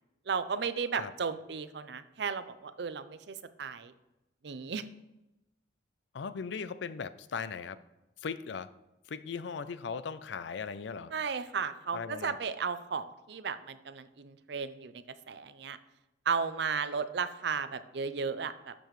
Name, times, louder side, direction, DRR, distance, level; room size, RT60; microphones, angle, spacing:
voice 1, 0.3-3.9 4.4-4.8 11.1-15.8 16.3-18.7, right 5 dB, 60° right, 13 dB, 0.5 m, -34 dB
voice 2, 6.1-7.8 8.2-8.7 9.1-11.1 11.9-12.4, left 5 dB, 65° left, 15 dB, 0.4 m, -38 dB
12.0 x 6.8 x 3.1 m, 0.95 s
head